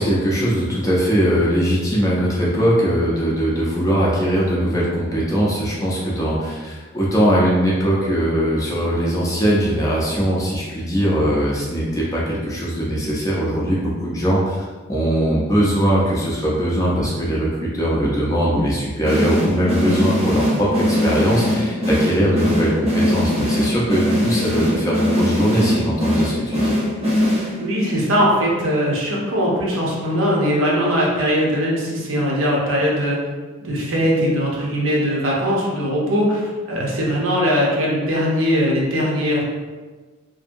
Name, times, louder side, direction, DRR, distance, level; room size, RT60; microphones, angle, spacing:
voice 1, 0.0-26.7, equal, 15° left, -5 dB, 0.4 m, -20 dB
sound 1, 19.0-27.8, left 1 dB, 25° right, 0.7 m, -21 dB
voice 2, 27.6-33.2 33.6-39.4, equal, 65° right, -3 dB, 0.7 m, -20 dB
2.6 x 2.6 x 2.5 m, 1.3 s
head